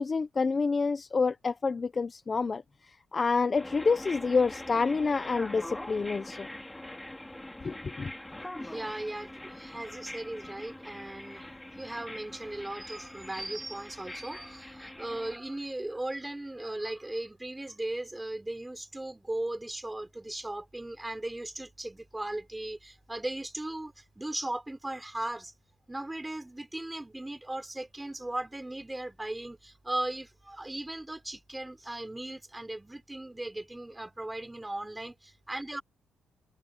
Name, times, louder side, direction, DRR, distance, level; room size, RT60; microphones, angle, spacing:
voice 1, 0.0-2.6 3.1-6.5 7.6-8.1, left 4 dB, 25° left, 0.8 m, -28 dB
sound 1, 3.5-15.4, left 1 dB, 5° left, 2.6 m, -43 dB
voice 2, 8.6-25.5 25.9-35.8, right 1 dB, 10° right, 5.2 m, -37 dB
cardioid pair, 140°, 0 cm